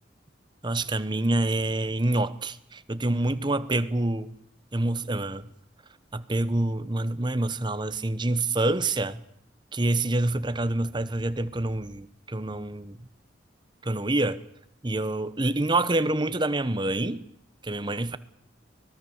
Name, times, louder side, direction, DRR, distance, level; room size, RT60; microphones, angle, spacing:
voice 1, 0.6-4.4 4.7-5.5 6.1-9.2 9.7-13.0 13.8-14.4 14.8-17.2 17.6-18.2, right 2 dB, 25° right, 13 dB, 1.0 m, -27 dB
24.5 x 19.0 x 7.2 m, 0.74 s
head